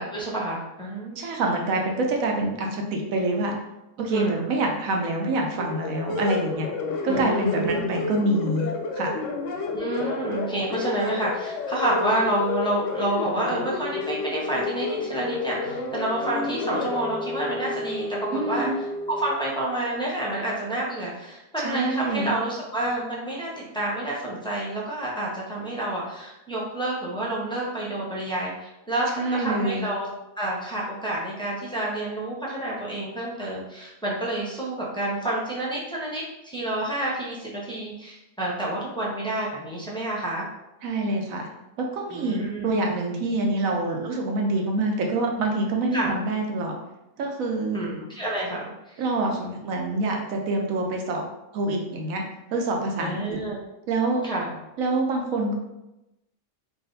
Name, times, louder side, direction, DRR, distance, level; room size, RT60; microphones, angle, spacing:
voice 1, 0.0-1.2 4.1-4.5 7.1-7.8 9.7-18.7 19.1-30.1 30.4-40.5 42.1-42.7 45.9-46.1 47.7-49.0 53.0-53.6 54.2-54.5, right 1 dB, 5° left, -6 dB, 0.5 m, -29 dB
voice 2, 1.2-3.5 4.0-6.7 7.0-9.2 18.3-18.8 21.6-22.4 29.1-29.8 40.8-41.5 41.9-46.7 47.2-47.8 49.0-51.2 51.5-52.2 52.5-53.4 53.9-54.2 54.8-55.6, right 2 dB, 70° right, 1 dB, 1.1 m, -26 dB
sound 1, 5.6-19.3, left 3 dB, 65° left, 0.8 m, -30 dB
3.6 x 2.4 x 3.9 m, 0.93 s
omnidirectional pair, 1.5 m